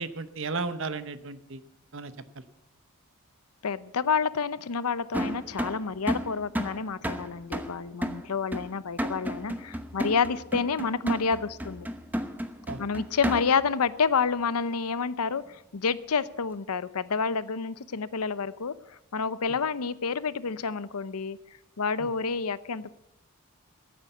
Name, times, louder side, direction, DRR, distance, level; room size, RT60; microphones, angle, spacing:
voice 1, 0.0-1.6 1.9-2.4 12.7-12.8 19.5-19.6 22.0-22.1, right 3 dB, 55° right, 12 dB, 0.9 m, -35 dB
voice 2, 3.6-11.9 12.8-21.4 21.8-22.9, left 5 dB, 90° left, 16 dB, 0.7 m, -29 dB
sound 1, 5.1-13.7, equal, 10° right, 0.9 m, -33 dB
14.5 x 8.8 x 7.9 m, 0.85 s
head